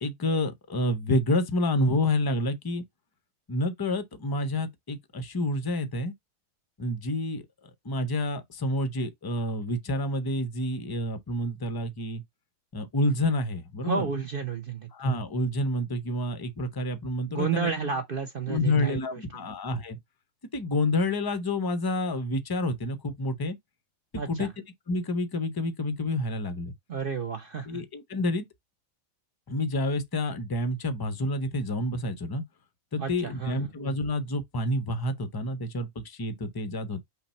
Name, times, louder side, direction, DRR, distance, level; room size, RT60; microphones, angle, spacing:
voice 1, 0.0-2.8 3.5-6.1 6.8-7.4 7.8-12.2 12.7-14.1 14.9-17.7 18.5-20.0 20.5-23.6 24.3-24.5 24.9-26.7 27.7-28.4 29.5-32.4 32.9-37.0, left 1 dB, 35° left, 0.4 m, -28 dB
voice 2, 13.8-14.9 17.3-19.4 24.2-24.5 26.9-27.8 33.0-33.7, right 5 dB, 50° right, 0.8 m, -31 dB
5.7 x 2.2 x 4.1 m
omnidirectional pair, 1.4 m